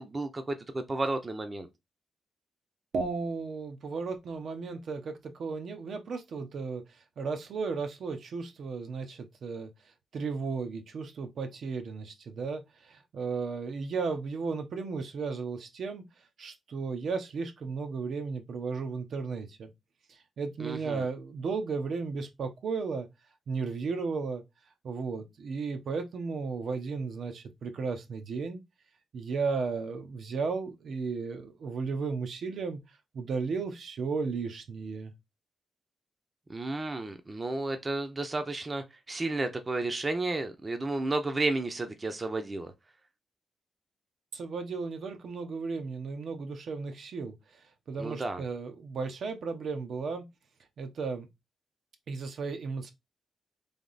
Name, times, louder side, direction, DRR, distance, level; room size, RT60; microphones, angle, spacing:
voice 1, 0.0-1.7 20.6-21.0 36.5-42.7 48.0-48.4, right 2 dB, 25° right, 0.7 m, -32 dB
voice 2, 2.9-6.8 7.2-9.7 10.1-16.0 16.4-19.7 20.4-23.1 23.5-24.4 24.8-28.6 29.1-32.8 33.1-35.1 44.3-47.3 47.9-50.2 50.8-51.3 52.1-52.9, right 4 dB, 65° right, 0.8 m, -34 dB
3.5 x 2.9 x 4.0 m
cardioid pair, 105°, 0 cm